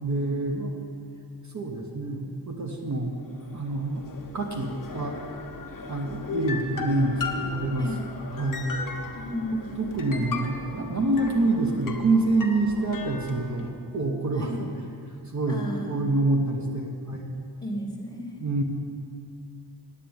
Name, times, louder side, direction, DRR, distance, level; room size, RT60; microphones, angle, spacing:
voice 1, 0.0-0.8 1.5-3.2 3.5-4.0 4.3-5.2 5.9-7.9 8.3-8.9 9.5-14.6 15.3-17.4 18.4-18.6, right 2 dB, 45° right, 1 dB, 1.1 m, -27 dB
sound 1, 3.2-13.7, left 4 dB, 55° left, 1.0 m, -37 dB
voice 2, 9.1-9.7 14.4-14.6 15.5-16.1 17.6-18.3, left 1 dB, 10° left, -2 dB, 1.9 m, -34 dB
8.8 x 8.4 x 9.3 m, 2.3 s
wide cardioid pair, 155°, 39 cm